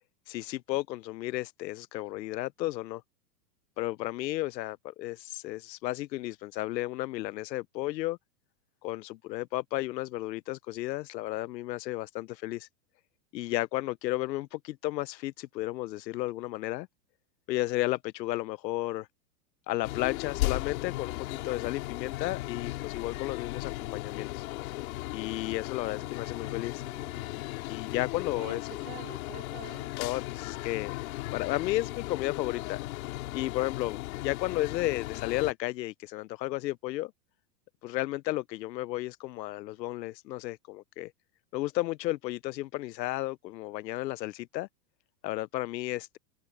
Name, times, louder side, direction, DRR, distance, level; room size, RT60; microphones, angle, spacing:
voice 1, 0.3-3.0 3.8-8.2 8.8-12.7 13.3-16.9 17.5-19.1 19.7-24.4 25.1-26.8 27.7-28.9 30.0-32.8 33.3-37.1 37.8-41.1 41.5-44.7 45.2-46.2, left 17 dB, 85° left, 0.7 m, -33 dB
sound 1, 19.8-35.5, left 19 dB, 55° left, 3.6 m, -36 dB
voice 2, 25.7-27.5 28.3-29.9, right 19 dB, 55° right, 3.1 m, -49 dB
open air
supercardioid pair, 165°, 49 cm